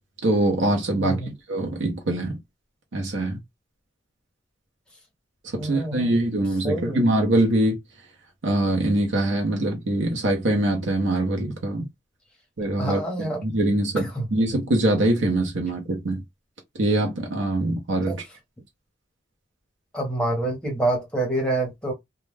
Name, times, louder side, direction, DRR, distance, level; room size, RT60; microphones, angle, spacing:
voice 1, 0.2-2.4 2.9-3.4 5.5-7.8 8.4-11.9 12.6-13.0 13.4-16.2 16.8-18.1, right 1 dB, 70° right, 0.7 m, -23 dB
voice 2, 1.0-1.3 5.6-6.3 6.6-7.1 12.8-13.4 14.0-14.3 18.1-18.2 19.9-21.9, right 2 dB, 5° left, 0.9 m, -27 dB
2.3 x 2.2 x 3.2 m
head